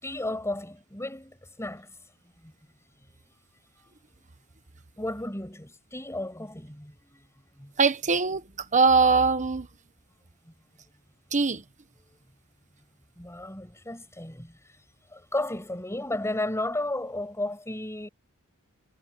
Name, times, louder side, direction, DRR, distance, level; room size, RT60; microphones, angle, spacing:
voice 1, 0.0-1.9 2.4-2.5 5.0-7.3 7.5-7.7 10.4-10.5 13.2-14.8 15.1-18.1, left 1 dB, 10° left, 6.7 m, -34 dB
voice 2, 7.8-9.7 11.3-11.6, right 4 dB, 35° right, 1.2 m, -22 dB
head